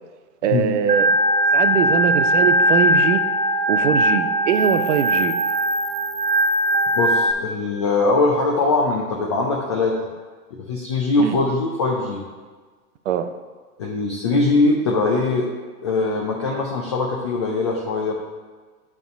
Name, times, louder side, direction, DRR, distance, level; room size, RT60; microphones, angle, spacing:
voice 1, 0.4-1.1 1.5-3.2 3.7-5.4 11.2-11.4 13.1-13.3, right 9 dB, 50° right, 10 dB, 0.6 m, -22 dB
Organ, 0.9-7.3, equal, 75° right, 1.1 m, -19 dB
voice 2, 6.9-9.9 10.5-12.2 13.8-15.5 15.8-18.2, left 3 dB, 20° left, -2 dB, 0.3 m, -21 dB
6.9 x 3.6 x 6.3 m, 1.4 s
hypercardioid pair, 120°, 46 cm